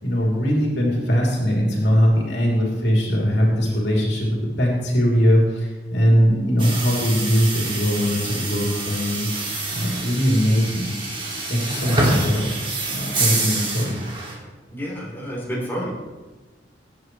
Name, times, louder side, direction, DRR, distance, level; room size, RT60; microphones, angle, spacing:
voice 1, 0.0-9.3 9.7-11.2 11.5-12.5 12.9-14.0, equal, 75° left, -2 dB, 3.0 m, -21 dB
sound 1, 6.6-14.3, right 2 dB, 30° right, 2.3 m, -27 dB
voice 2, 14.7-15.9, equal, 10° left, -6 dB, 3.7 m, -29 dB
19.5 x 9.3 x 3.2 m, 1.2 s
head